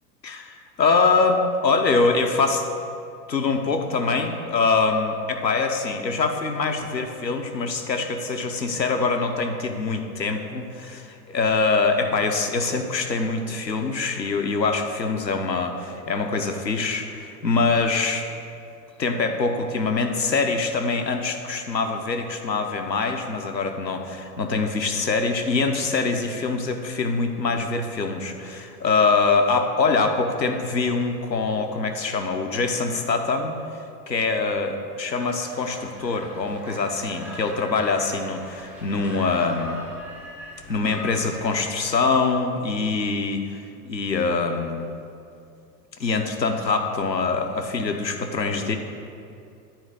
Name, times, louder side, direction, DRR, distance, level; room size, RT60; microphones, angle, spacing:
voice 1, 0.2-2.7 3.3-18.3 19.0-33.5 34.1-39.8 40.7-44.9 46.0-48.7, left 4 dB, 85° left, 5 dB, 0.9 m, -24 dB
sound 1, 35.1-41.6, equal, 10° left, 0.3 m, -41 dB
9.3 x 4.4 x 4.9 m, 2.5 s
figure-of-eight pair, 100°, 50 cm